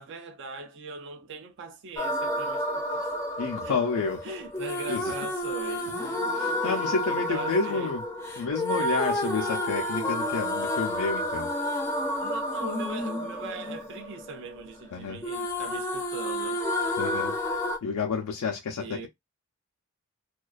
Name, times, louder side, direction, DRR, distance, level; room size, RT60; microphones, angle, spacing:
voice 1, 0.0-3.2 3.6-3.8 4.2-6.2 6.6-7.9 12.2-16.6 18.8-19.1, right 3 dB, 55° right, 0.3 m, -40 dB
sound 1, 2.0-14.9 15.2-17.8, left 1 dB, 10° left, 0.4 m, -30 dB
voice 2, 3.4-4.2 4.9-5.1 6.3-8.0 8.4-11.5 14.9-15.2 17.0-17.4 17.8-19.1, left 4 dB, 90° left, 0.4 m, -30 dB
2.3 x 2.2 x 2.3 m
head